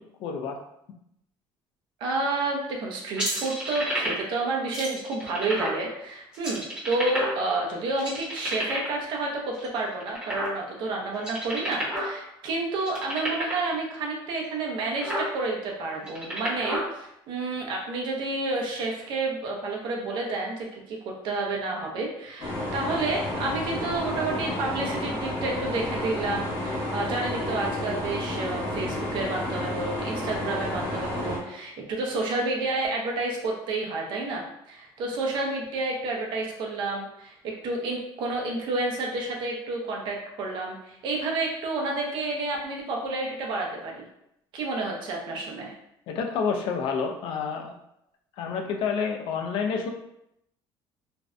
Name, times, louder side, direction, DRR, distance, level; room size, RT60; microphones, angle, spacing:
voice 1, 0.2-0.6 46.1-47.7 48.4-49.9, left 5 dB, 65° left, 3 dB, 0.4 m, -28 dB
voice 2, 2.0-44.1 44.5-45.7, right 2 dB, 55° right, -1 dB, 0.6 m, -30 dB
sound 1, 3.2-4.4 4.7-5.8 6.3-7.6 8.0-9.0 9.5-10.8 11.1-12.1 12.4-12.5 12.8-13.7 14.3-14.4 14.8-15.3 15.9-16.8, equal, 10° right, 0.9 m, -30 dB
sound 2, 22.4-31.4, left 1 dB, 80° left, 0.9 m, -31 dB
2.5 x 2.1 x 2.4 m, 0.80 s
cardioid pair, 145°, 9 cm